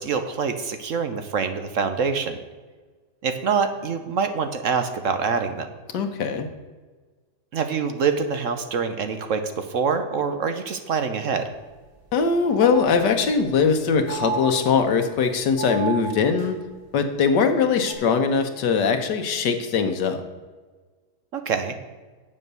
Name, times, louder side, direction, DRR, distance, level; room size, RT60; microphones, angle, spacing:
voice 1, 0.0-2.4 3.2-5.7 7.5-11.5 21.3-21.7, right 5 dB, 55° right, 8 dB, 1.0 m, -25 dB
voice 2, 5.9-6.5 12.1-16.6 16.9-20.2, left 5 dB, 85° left, 6 dB, 1.6 m, -21 dB
sound 1, 11.5-11.6 11.9-12.0 12.4-13.4 14.1-15.1 15.6-16.5 17.8-17.9, right 5 dB, 80° right, 2.2 m, -33 dB
8.8 x 7.1 x 6.7 m, 1.4 s
omnidirectional pair, 1.8 m